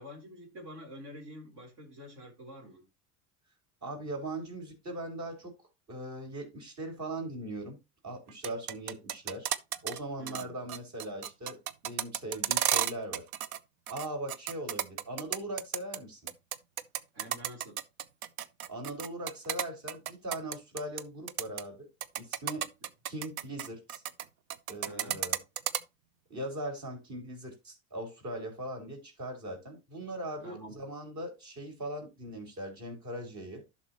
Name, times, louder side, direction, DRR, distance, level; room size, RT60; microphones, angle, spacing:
voice 1, 0.0-2.8 10.2-10.6 17.1-17.8 24.9-25.2 30.4-30.8, equal, 60° right, 3.7 m, -47 dB
voice 2, 3.8-5.5 5.9-7.8 8.0-9.5 9.8-11.6 11.8-13.3 13.9-16.2 18.7-21.9 22.1-22.7 23.0-24.0 24.7-25.4 26.3-33.6, right 1 dB, 40° right, 4.4 m, -40 dB
sound 1, 8.3-10.0 10.3-10.4 10.7-13.6 13.9-16.0 16.3-21.0 21.3-21.6 22.0-24.2 24.5-25.8, right 11 dB, 85° right, 0.7 m, -32 dB
11.5 x 6.1 x 2.9 m
hypercardioid pair, 80°, 42 cm